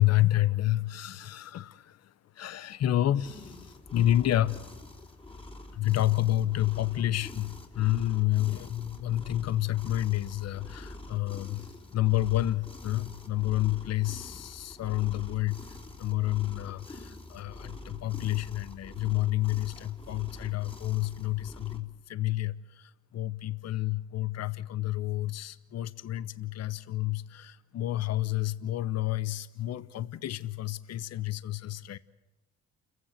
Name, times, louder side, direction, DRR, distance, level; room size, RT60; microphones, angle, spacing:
voice 1, 0.0-2.0 2.4-4.6 5.7-11.7 11.9-15.6 16.0-32.0, left 14 dB, 60° left, 16 dB, 0.9 m, -29 dB
sound 1, 3.2-21.8, left 2 dB, 20° left, 3.2 m, -46 dB
29.0 x 16.0 x 8.1 m, 1.1 s
cardioid pair, 90°, 30 cm